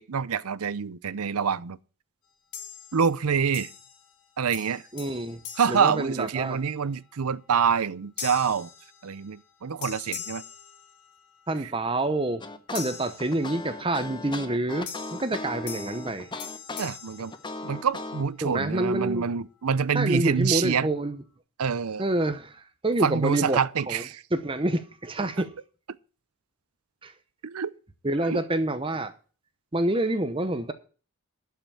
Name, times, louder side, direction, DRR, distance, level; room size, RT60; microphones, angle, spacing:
voice 1, 0.0-1.8 2.9-3.7 4.4-4.8 5.6-8.7 9.0-10.4 11.6-11.7 16.8-17.3 17.6-20.9 21.6-22.0 23.0-24.2 27.4-27.7 28.2-28.4, right 6 dB, 85° right, 0.6 m, -26 dB
sound 1, 2.5-3.2 3.5-4.2 4.5-6.7 7.2-7.5 8.2-9.5 9.8-11.4 12.7-13.9 14.9-18.1, left 7 dB, 85° left, 2.3 m, -42 dB
voice 2, 4.9-5.4 5.7-6.6 11.5-12.4 12.7-16.3 18.4-19.2 19.9-21.2 22.0-23.6 23.9-24.0 24.3-25.5 27.0-27.1 28.0-29.1 29.7-30.7, right 1 dB, 25° right, 0.8 m, -27 dB
sound 2, 12.4-18.2, left 2 dB, 20° left, 0.8 m, -37 dB
12.0 x 5.9 x 8.4 m
head